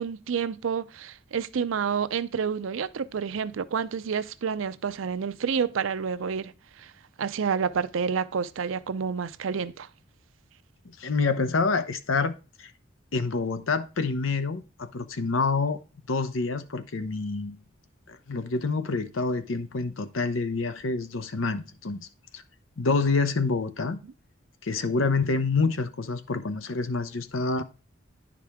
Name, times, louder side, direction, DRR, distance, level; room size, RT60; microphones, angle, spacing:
voice 1, 0.0-6.5 6.8-6.9 7.2-9.9, right 6 dB, 85° right, 0.5 m, -29 dB
voice 2, 10.8-12.7 13.1-15.8 16.1-17.6 18.1-22.1 22.3-22.4 22.8-24.0 24.6-27.6, left 4 dB, 90° left, 0.8 m, -27 dB
10.0 x 4.9 x 3.5 m
head